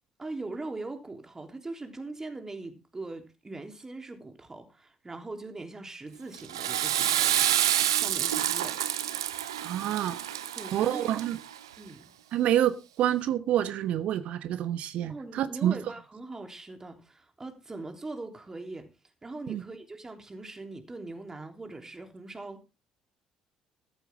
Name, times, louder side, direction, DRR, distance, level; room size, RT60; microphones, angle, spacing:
voice 1, 0.2-7.6 7.9-8.8 10.6-11.2 11.8-12.0 15.1-18.9 19.2-22.6, right 2 dB, 20° right, 3.4 m, -41 dB
Water / Toilet flush, 6.3-11.6, right 11 dB, 75° right, 0.8 m, -28 dB
voice 2, 9.6-10.2 10.7-11.4 12.3-15.7 19.5-19.6, right 11 dB, 55° right, 1.1 m, -27 dB
14.0 x 13.5 x 3.6 m
figure-of-eight pair, 50°, 3 cm